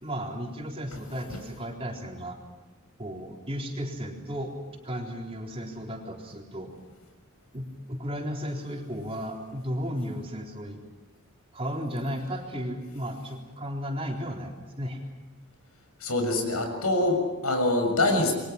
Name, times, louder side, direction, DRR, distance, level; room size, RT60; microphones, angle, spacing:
voice 1, 0.0-2.4 3.0-4.5 4.8-6.7 7.5-10.8 11.5-15.0, equal, 25° right, 0 dB, 3.9 m, -34 dB
voice 2, 16.0-18.3, left 2 dB, 80° left, 4 dB, 6.7 m, -25 dB
29.0 x 23.0 x 6.0 m, 1.3 s
head